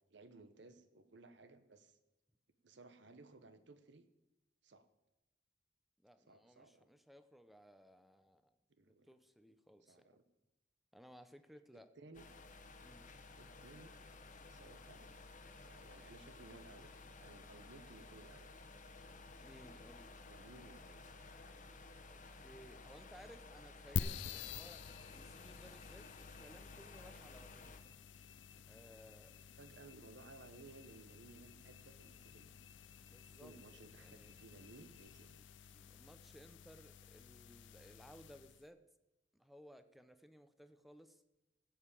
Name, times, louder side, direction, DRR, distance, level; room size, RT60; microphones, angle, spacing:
voice 1, 0.0-2.0 2.6-4.1 4.6-4.9 6.3-6.9 8.8-9.1 9.9-10.2 11.7-12.3 13.4-13.9 14.3-15.1 15.7-18.5 20.2-21.3 29.6-32.6 33.4-35.5, right 2 dB, 70° right, 10 dB, 1.0 m, -59 dB
voice 2, 6.0-8.6 8.9-10.1 10.9-11.9 12.8-13.1 19.4-20.2 22.1-27.8 28.7-29.4 29.6-29.7 33.0-33.5 34.0-34.3 35.7-38.9 39.3-41.2, equal, ahead, 10 dB, 0.7 m, -60 dB
sound 1, 12.1-27.8, left 3 dB, 45° left, 1.1 m, -55 dB
sound 2, 24.0-38.7, left 6 dB, 75° left, 0.5 m, -49 dB
16.5 x 5.7 x 8.4 m, 0.99 s
head